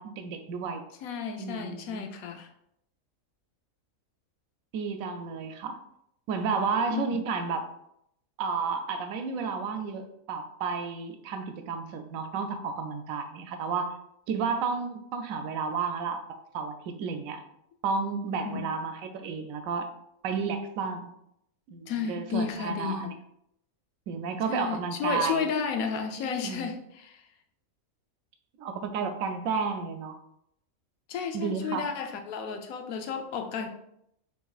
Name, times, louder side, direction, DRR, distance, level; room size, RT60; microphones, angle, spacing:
voice 1, 0.0-0.8 1.4-2.1 4.7-5.8 6.3-7.7 8.4-13.9 14.3-16.2 16.5-17.4 17.8-19.9 20.2-21.1 21.7-23.1 24.1-25.4 26.4-26.7 28.6-30.2 31.3-31.9, right 5 dB, 75° right, 7 dB, 1.0 m, -32 dB
voice 2, 1.0-2.5 6.9-7.0 18.4-18.6 21.9-23.1 24.5-27.2 31.1-33.7, left 6 dB, 80° left, 5 dB, 1.0 m, -32 dB
5.5 x 3.1 x 2.3 m, 0.76 s
omnidirectional pair, 1.5 m